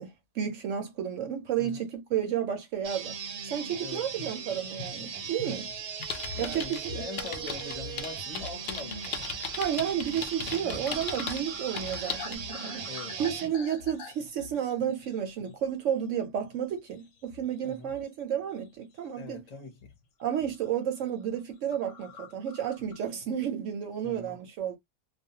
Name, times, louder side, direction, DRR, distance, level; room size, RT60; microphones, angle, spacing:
voice 1, 0.0-3.2 3.5-5.7 6.4-7.0 9.5-12.9 13.2-19.4 20.2-24.8, right 9 dB, 65° right, 0.9 m, -32 dB
sound 1, 2.8-13.5, right 7 dB, 85° right, 1.2 m, -38 dB
sound 2, 4.0-15.7 16.0-16.3 16.7-18.2 18.5-19.3 19.8-20.0 20.3-20.7 21.0-21.1 21.4-21.5 21.7-23.1, left 6 dB, 70° left, 0.9 m, -47 dB
sound 3, 6.0-6.8 7.2-11.4 11.8-12.3, left 7 dB, 85° left, 0.4 m, -37 dB
voice 2, 6.3-9.4 10.7-10.8 12.9-13.2 17.6-17.9 19.2-19.9 24.0-24.4, left 2 dB, 40° left, 0.6 m, -43 dB
2.4 x 2.1 x 2.7 m
omnidirectional pair, 1.5 m